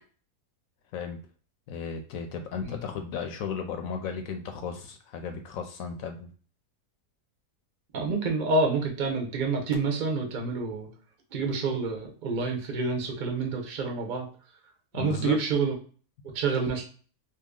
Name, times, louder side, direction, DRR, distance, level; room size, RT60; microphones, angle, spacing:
voice 1, 1.7-6.3 14.9-15.4, left 6 dB, 70° left, 5 dB, 0.9 m, -35 dB
voice 2, 7.9-10.9 11.3-14.3 14.9-15.7 16.2-16.9, right 4 dB, 45° right, 2 dB, 0.7 m, -28 dB
2.9 x 2.6 x 3.6 m, 0.41 s
omnidirectional pair, 1.6 m